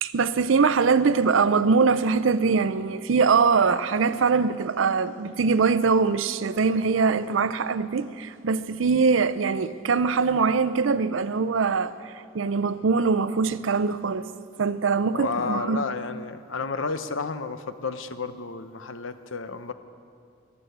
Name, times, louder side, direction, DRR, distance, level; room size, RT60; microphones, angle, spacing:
voice 1, 0.0-14.2 14.6-15.8, right 5 dB, 85° right, 0.5 m, -22 dB
voice 2, 15.1-19.7, left 4 dB, 85° left, 0.8 m, -31 dB
14.5 x 11.0 x 7.9 m
head